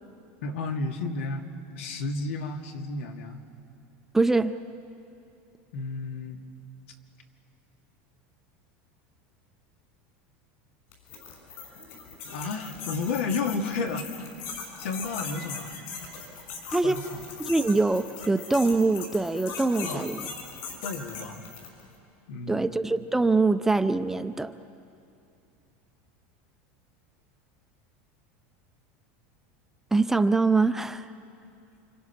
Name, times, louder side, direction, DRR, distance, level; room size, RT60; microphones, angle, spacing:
voice 1, 0.4-1.4 1.8-3.4 5.7-6.4 12.3-14.3 14.8-15.7 16.8-17.2 19.8-20.2 20.8-21.4 22.3-22.7, left 3 dB, 90° left, 3 dB, 2.3 m, -32 dB
voice 2, 4.1-4.5 16.7-17.0 17.4-20.2 22.5-24.5 29.9-31.1, right 3 dB, 5° right, 10 dB, 0.6 m, -23 dB
sound 1, 10.9-21.9, left 5 dB, 60° left, 6.7 m, -40 dB
29.5 x 26.5 x 5.9 m, 2.6 s
supercardioid pair, 150°, 7 cm